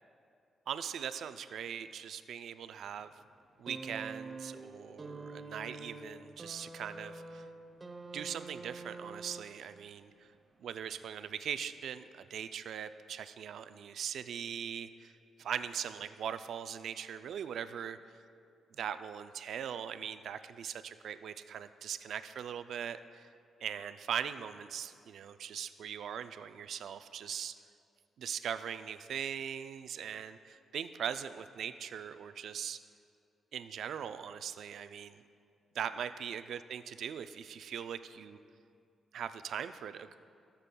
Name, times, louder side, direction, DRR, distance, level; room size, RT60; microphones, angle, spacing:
voice 1, 0.7-3.1 3.6-7.4 8.1-10.1 10.6-15.1 15.4-18.0 18.8-23.3 23.6-27.5 28.2-32.8 33.5-35.2 35.7-38.4 39.1-40.2, right 8 dB, 75° right, 11 dB, 0.3 m, -40 dB
sound 1, 3.7-9.8 10.9-11.0, right 3 dB, 25° right, 0.6 m, -46 dB
16.5 x 6.8 x 2.2 m, 2.4 s
cardioid pair, 110°, 0 cm